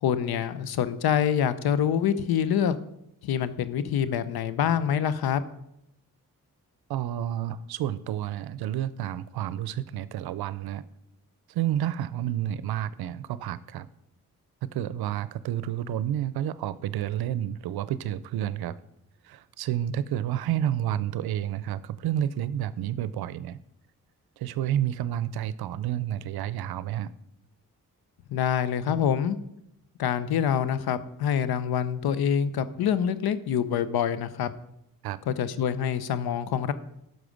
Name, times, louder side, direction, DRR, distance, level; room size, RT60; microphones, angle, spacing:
voice 1, 0.0-2.7 3.2-5.4 28.3-29.4 30.0-34.5 35.3-36.7, left 8 dB, 80° left, 0.7 m, -26 dB
voice 2, 6.9-10.8 11.5-13.9 14.6-18.7 19.2-23.6 24.4-27.1 35.0-35.2, right 11 dB, 85° right, 0.5 m, -30 dB
11.0 x 6.4 x 5.1 m
supercardioid pair, 45°, 37 cm